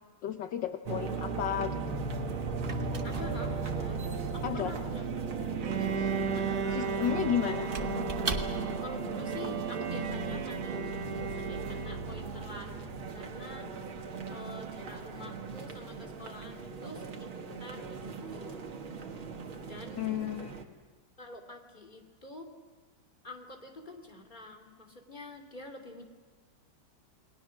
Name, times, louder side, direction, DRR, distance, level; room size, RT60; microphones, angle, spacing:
voice 1, 0.2-1.7 4.4-4.7 6.7-7.7 20.0-20.5, left 10 dB, 65° left, 7 dB, 1.5 m, -32 dB
sound 1, 0.9-20.6, right 4 dB, 75° right, 2.5 m, -37 dB
Squeak / Wood, 1.9-8.9, right 3 dB, 30° right, 1.6 m, -42 dB
voice 2, 3.0-4.0 4.3-5.1 5.4-6.6 7.5-7.6 8.8-12.7 13.1-13.7 14.3-17.3 17.6-18.7 19.7-20.3 21.2-22.5 23.2-26.0, left 2 dB, 20° left, 3 dB, 2.9 m, -47 dB
Bowed string instrument, 5.6-12.3, right 5 dB, 55° right, 1.6 m, -36 dB
29.0 x 21.5 x 6.4 m, 1.4 s
omnidirectional pair, 2.3 m